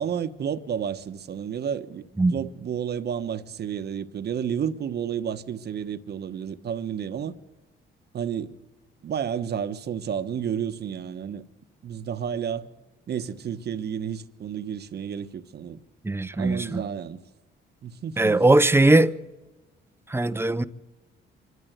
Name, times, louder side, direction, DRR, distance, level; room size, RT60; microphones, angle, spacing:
voice 1, 0.0-2.0 2.3-7.4 8.1-8.6 9.0-11.4 11.8-12.7 13.1-15.8 16.3-17.2 17.8-18.4, right 8 dB, 55° right, 1.1 m, -31 dB
voice 2, 16.0-16.8 18.2-19.1 20.1-20.6, right 2 dB, 10° right, 0.7 m, -20 dB
25.5 x 12.5 x 8.0 m
cardioid pair, 90°, 20 cm